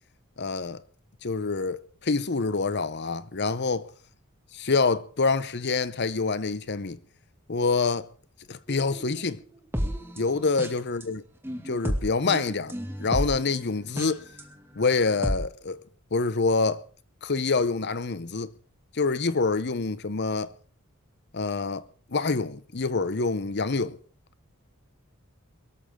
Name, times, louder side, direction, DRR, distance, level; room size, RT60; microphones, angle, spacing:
voice 1, 0.4-0.8 1.2-3.9 4.5-7.0 7.5-8.1 8.5-9.4 10.2-11.2 11.7-12.7 13.0-14.2 14.8-15.8 16.1-16.8 17.2-18.5 18.9-20.5 21.3-24.0, left 4 dB, 50° left, 0.9 m, -26 dB
sound 1, 8.7-11.0 11.4-14.4 14.9-15.3, equal, 10° right, 2.3 m, -32 dB
22.5 x 13.5 x 3.8 m
head